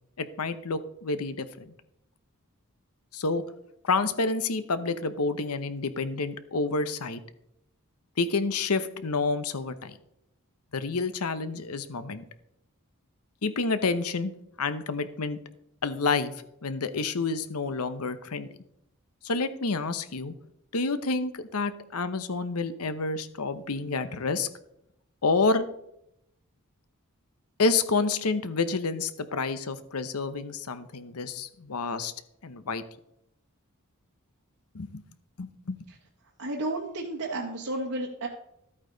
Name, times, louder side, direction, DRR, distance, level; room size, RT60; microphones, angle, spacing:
voice 1, 0.2-1.7 3.1-3.4 3.8-7.2 8.2-10.0 10.7-12.2 13.4-14.3 14.6-15.4 15.8-16.3 16.6-18.5 19.2-20.3 20.7-24.5 25.2-25.7 27.6-32.1 32.4-32.8 34.7-35.0 35.4-35.8, left 3 dB, 85° left, 12 dB, 0.9 m, -29 dB
voice 2, 36.4-38.3, right 2 dB, 85° right, -2 dB, 1.5 m, -32 dB
13.0 x 8.8 x 4.0 m, 0.78 s
head